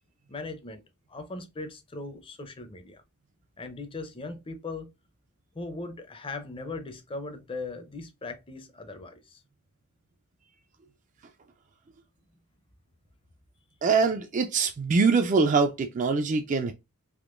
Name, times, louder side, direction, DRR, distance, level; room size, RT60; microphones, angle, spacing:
voice 1, 0.3-0.8 1.1-3.0 3.6-4.9 5.5-9.4, left 3 dB, 25° left, 0.5 m, -39 dB
voice 2, 13.8-16.7, right 4 dB, 35° right, 0.3 m, -23 dB
3.6 x 2.9 x 2.4 m
head